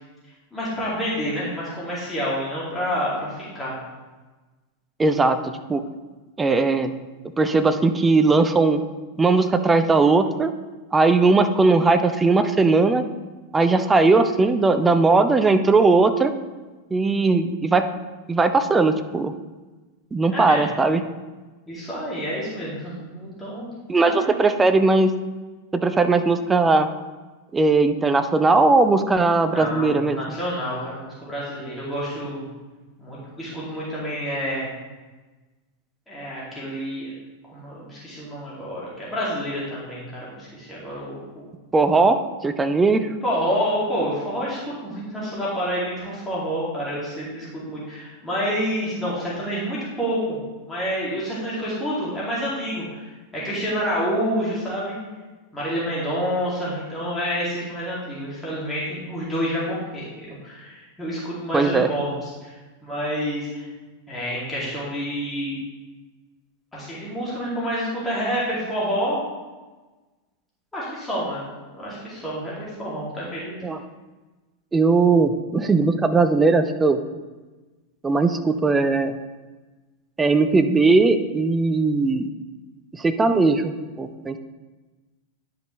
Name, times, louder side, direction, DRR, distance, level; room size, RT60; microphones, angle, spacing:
voice 1, 0.5-3.8 20.3-20.6 21.7-23.7 24.0-24.3 29.5-32.4 33.0-34.7 36.1-37.1 37.5-41.4 43.2-50.4 50.7-55.0 55.5-62.6 62.8-63.7 64.1-65.6 66.7-69.2 70.7-71.5 71.8-73.5, equal, 10° left, -8 dB, 2.4 m, -28 dB
voice 2, 5.0-5.4 5.7-5.8 6.4-6.9 7.4-8.8 9.2-10.5 10.9-13.0 13.5-16.3 16.9-17.9 18.3-19.3 20.1-21.0 23.9-24.1 24.4-25.1 25.7-26.9 27.5-30.2 41.7-43.1 61.5-61.9 73.6-73.8 74.7-77.0 78.0-79.2 80.2-82.3 82.9-84.4, right 3 dB, 15° right, 9 dB, 0.5 m, -19 dB
10.0 x 5.2 x 3.2 m, 1.2 s
figure-of-eight pair, 90°, 0 cm